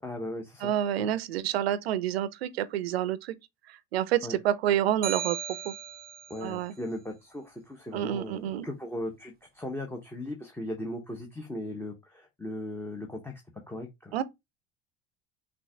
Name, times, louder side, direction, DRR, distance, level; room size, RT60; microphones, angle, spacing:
voice 1, 0.0-1.1 4.2-4.4 6.3-13.4 13.7-14.1, left 1 dB, 5° left, 1.0 m, -38 dB
voice 2, 0.6-3.3 3.9-5.7 6.4-6.7 7.9-8.7 14.1-14.2, right 11 dB, 75° right, 0.6 m, -28 dB
sound 1, 5.0-6.4, right 9 dB, 30° right, 0.6 m, -36 dB
6.1 x 2.5 x 3.5 m
figure-of-eight pair, 65°, 31 cm